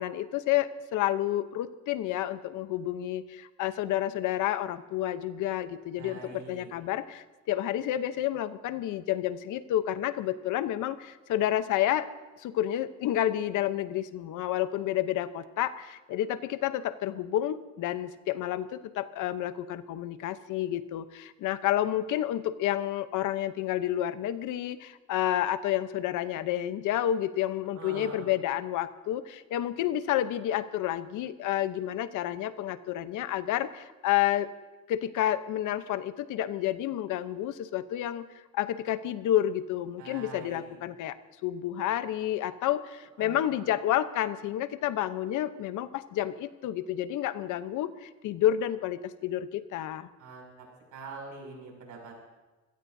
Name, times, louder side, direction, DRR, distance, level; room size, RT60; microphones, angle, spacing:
voice 1, 0.0-12.1 12.4-34.5 34.9-50.1, left 12 dB, 90° left, 12 dB, 0.9 m, -30 dB
voice 2, 6.0-6.7 27.7-28.3 40.0-40.8 43.2-43.5 50.2-50.6 50.9-52.2, right 4 dB, 85° right, 0 dB, 6.3 m, -44 dB
26.0 x 17.0 x 2.7 m, 1.2 s
cardioid pair, 90°, 30 cm